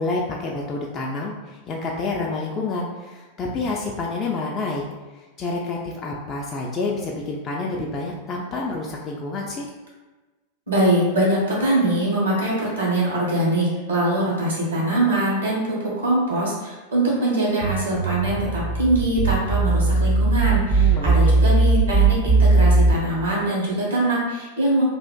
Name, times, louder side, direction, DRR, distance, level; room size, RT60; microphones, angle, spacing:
voice 1, 0.0-4.8 5.4-9.7 20.8-21.1, left 3 dB, 25° left, -2 dB, 0.3 m, -28 dB
voice 2, 10.7-24.8, right 1 dB, 75° right, -5 dB, 1.1 m, -22 dB
sound 1, 17.6-22.9, right 3 dB, 20° right, 0.5 m, -18 dB
3.2 x 2.4 x 2.2 m, 1.2 s
figure-of-eight pair, 90°, 0 cm